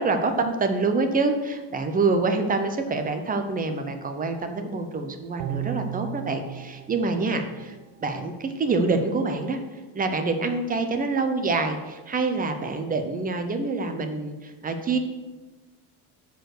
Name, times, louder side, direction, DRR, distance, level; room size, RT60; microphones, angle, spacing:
voice 1, 0.0-7.7 8.0-9.6 9.9-15.0, right 3 dB, 20° right, 7 dB, 0.5 m, -26 dB
sound 1, 5.4-8.7 9.1-9.2, right 12 dB, 75° right, 1.1 m, -37 dB
9.0 x 4.7 x 6.4 m, 1.2 s
cardioid pair, 170°, 46 cm